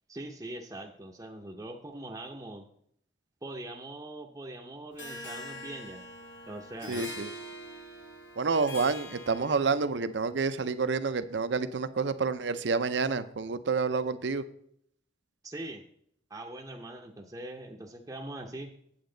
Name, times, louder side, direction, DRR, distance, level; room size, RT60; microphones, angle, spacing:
voice 1, 0.1-2.7 3.4-6.0 6.5-7.1 15.4-15.8 16.3-18.7, right 1 dB, 20° right, -1 dB, 0.7 m, -42 dB
Harp, 5.0-10.0, left 1 dB, 75° left, 1.8 m, -44 dB
voice 2, 6.9-7.3 8.4-14.4, right 4 dB, 70° right, 12 dB, 0.6 m, -29 dB
8.7 x 8.1 x 3.8 m, 0.68 s
head